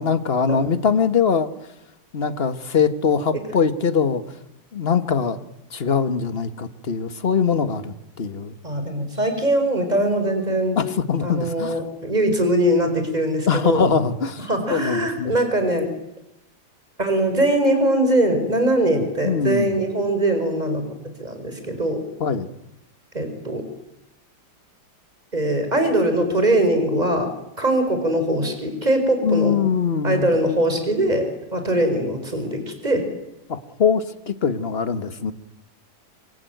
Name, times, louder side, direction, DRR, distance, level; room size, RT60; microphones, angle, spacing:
voice 1, 0.0-1.5 2.1-4.2 4.7-5.4 5.7-8.5 10.8-11.8 13.5-15.3 19.2-19.7 22.2-22.5 29.2-30.3 33.5-35.3, left 6 dB, 35° left, 11 dB, 1.6 m, -22 dB
voice 2, 8.6-10.8 11.2-13.8 14.5-15.9 17.0-20.9 21.2-22.0 23.1-23.6 25.3-27.3 27.6-29.6 30.0-31.3 31.5-33.0, right 1 dB, 25° right, 7 dB, 4.9 m, -21 dB
25.5 x 25.0 x 9.3 m, 0.88 s
omnidirectional pair, 1.8 m